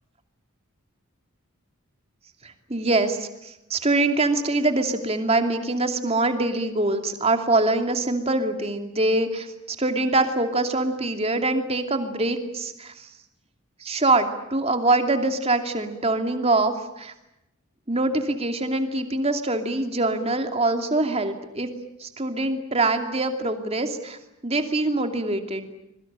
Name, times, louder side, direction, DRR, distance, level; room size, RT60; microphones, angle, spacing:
voice 1, 2.4-12.9 13.8-17.1 17.9-21.7 22.0-24.2 24.4-25.7, right 2 dB, 30° right, 6 dB, 2.7 m, -24 dB
25.5 x 23.0 x 8.9 m, 0.87 s
head